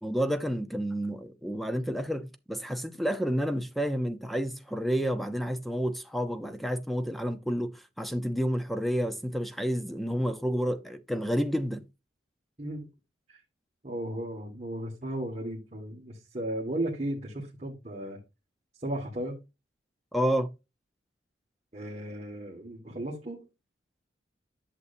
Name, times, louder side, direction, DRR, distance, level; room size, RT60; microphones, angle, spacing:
voice 1, 0.0-11.8 20.1-20.5, equal, ahead, 0.6 m, -30 dB
voice 2, 13.8-18.2 18.8-19.4 21.7-23.5, right 1 dB, 35° right, 1.7 m, -35 dB
11.0 x 6.7 x 2.6 m
head